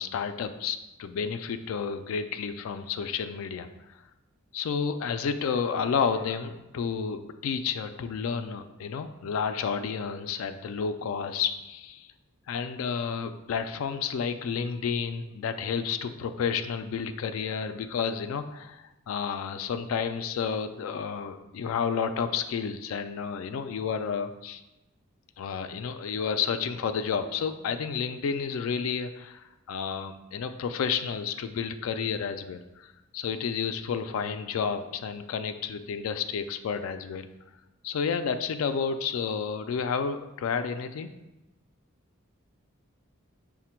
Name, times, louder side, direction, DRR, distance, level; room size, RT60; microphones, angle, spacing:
voice 1, 0.0-4.0 4.5-12.1 12.5-24.6 25.4-37.3 37.8-41.1, left 6 dB, 80° left, 9 dB, 0.3 m, -31 dB
5.8 x 2.1 x 4.3 m, 0.97 s
head